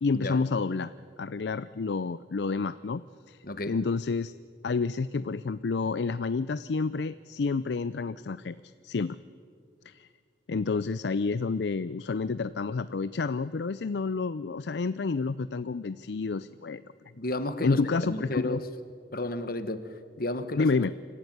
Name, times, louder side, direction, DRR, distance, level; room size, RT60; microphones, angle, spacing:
voice 1, 0.0-0.9 1.2-3.0 3.3-4.3 4.6-9.2 9.9-10.1 10.5-16.8 17.6-18.6 20.6-20.9, left 4 dB, 70° left, 15 dB, 0.5 m, -29 dB
voice 2, 3.4-3.8 17.2-18.7 19.1-20.7, left 1 dB, 55° left, 11 dB, 1.5 m, -32 dB
25.5 x 15.0 x 9.5 m, 2.2 s
head